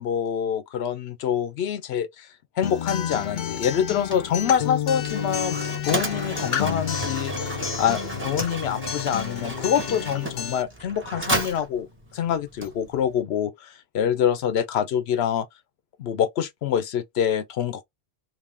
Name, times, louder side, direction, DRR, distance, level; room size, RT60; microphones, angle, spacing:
voice 1, 0.0-2.3 2.6-11.9 12.1-15.5 16.0-17.8, left 9 dB, 85° left, 0.9 m, -26 dB
Acoustic guitar, 2.6-10.6, left 9 dB, 55° left, 0.6 m, -31 dB
Mechanisms, 3.5-13.2, right 1 dB, 15° right, 0.8 m, -33 dB
2.7 x 2.7 x 3.5 m
omnidirectional pair, 1.1 m